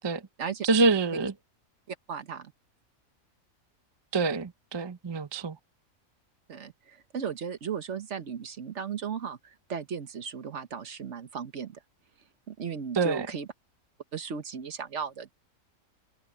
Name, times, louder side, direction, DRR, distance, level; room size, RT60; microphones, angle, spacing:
voice 1, 0.6-1.3 4.1-5.6 13.0-13.3, right 3 dB, 25° right, 0.6 m, -26 dB
voice 2, 1.9-2.5 6.5-11.8 12.5-13.5 14.1-15.3, right 7 dB, 60° right, 1.4 m, -36 dB
omnidirectional pair, 1.4 m